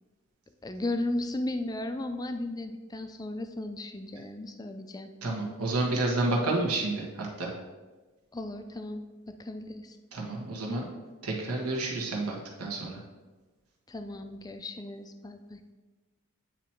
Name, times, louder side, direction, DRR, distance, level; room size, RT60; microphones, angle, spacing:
voice 1, 0.6-5.1 8.3-10.0 13.9-15.6, left 1 dB, 15° left, 7 dB, 0.3 m, -35 dB
voice 2, 5.2-7.5 10.1-10.8 11.2-13.0, right 2 dB, 85° right, -1 dB, 1.5 m, -30 dB
9.1 x 3.0 x 4.4 m, 1.2 s
head